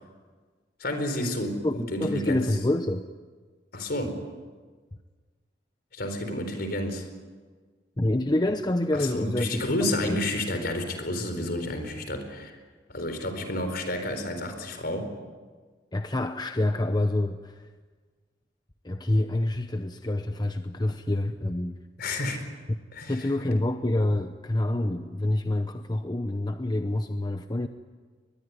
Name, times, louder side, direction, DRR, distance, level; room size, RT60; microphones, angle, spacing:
voice 1, 0.8-2.4 3.7-4.3 5.9-7.1 8.9-12.6 12.9-15.1 22.0-22.5 22.9-23.3, left 1 dB, 60° left, 7 dB, 4.6 m, -30 dB
voice 2, 1.6-3.1 8.0-9.6 9.9-10.2 15.9-17.7 18.8-21.8 23.1-27.7, left 1 dB, 25° left, 8 dB, 0.8 m, -27 dB
23.0 x 21.0 x 9.6 m, 1.5 s
head